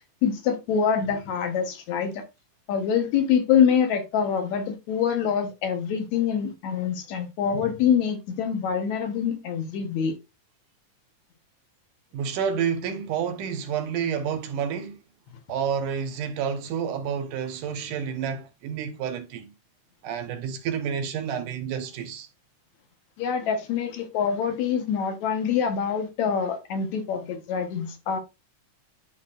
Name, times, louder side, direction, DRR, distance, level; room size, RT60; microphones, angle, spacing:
voice 1, 0.2-2.2 2.7-10.2 23.2-28.2, left 7 dB, 65° left, 2.3 m, -25 dB
voice 2, 12.1-15.0 15.5-19.5 20.0-22.3, right 7 dB, 80° right, 2.6 m, -29 dB
11.5 x 4.2 x 2.5 m
omnidirectional pair, 3.6 m